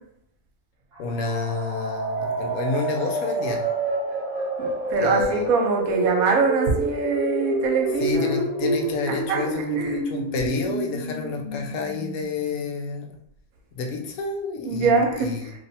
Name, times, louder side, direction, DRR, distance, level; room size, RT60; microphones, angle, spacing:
voice 1, 1.0-3.6 4.9-5.4 8.0-13.2 13.8-15.5, left 4 dB, 80° left, 2 dB, 1.0 m, -29 dB
sound 1, 1.0-12.6, right 2 dB, 60° right, 0.4 m, -28 dB
voice 2, 4.6-8.4 9.3-9.4 9.7-10.0 14.7-15.5, right 3 dB, 80° right, 2 dB, 1.1 m, -23 dB
3.1 x 2.5 x 2.7 m, 0.72 s
omnidirectional pair, 1.5 m